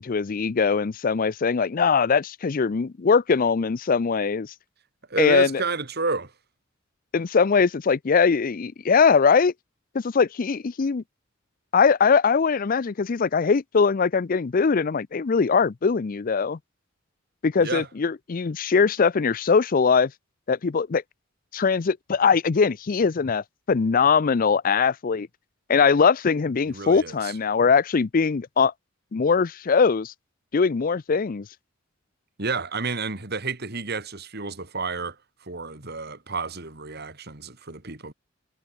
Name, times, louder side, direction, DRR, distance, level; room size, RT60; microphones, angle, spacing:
voice 1, 0.0-4.5 5.2-5.6 7.1-9.5 9.9-11.0 11.7-16.6 17.4-20.1 20.5-21.0 21.5-25.3 25.7-28.7 29.1-30.1 30.5-31.5, left 5 dB, 45° left, 0.5 m, -21 dB
voice 2, 5.1-6.3 17.6-17.9 26.7-27.4 32.4-35.2 35.4-38.1, right 4 dB, 50° right, 2.9 m, -30 dB
head